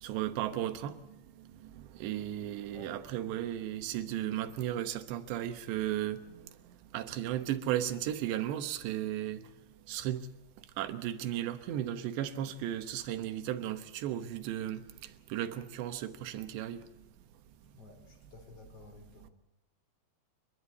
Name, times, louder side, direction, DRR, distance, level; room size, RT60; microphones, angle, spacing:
voice 1, 0.0-9.4 9.9-10.3 10.8-16.8 19.2-19.3, right 12 dB, 90° right, 3.4 m, -35 dB
voice 2, 17.7-19.3, left 3 dB, 40° left, 3.4 m, -53 dB
29.0 x 11.5 x 8.4 m
omnidirectional pair, 4.9 m